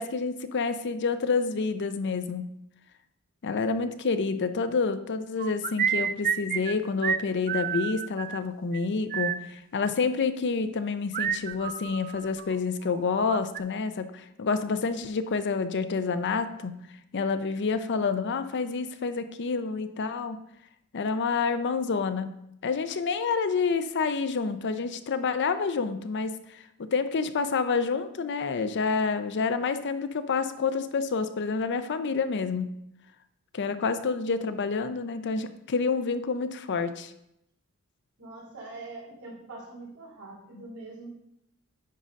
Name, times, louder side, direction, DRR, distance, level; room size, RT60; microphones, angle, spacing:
voice 1, 0.0-2.5 3.4-16.7 17.1-20.4 20.9-22.3 22.6-26.6 26.9-32.7 33.5-37.1, left 4 dB, 50° left, 11 dB, 0.5 m, -28 dB
sound 1, 5.4-6.8 7.0-7.2 7.5-8.4 8.7-8.8 9.1-9.4 11.1-12.5 12.8-13.6, right 8 dB, 40° right, 0.3 m, -30 dB
voice 2, 38.2-41.1, right 2 dB, 85° right, -4 dB, 3.2 m, -43 dB
9.4 x 3.8 x 5.1 m, 0.80 s
head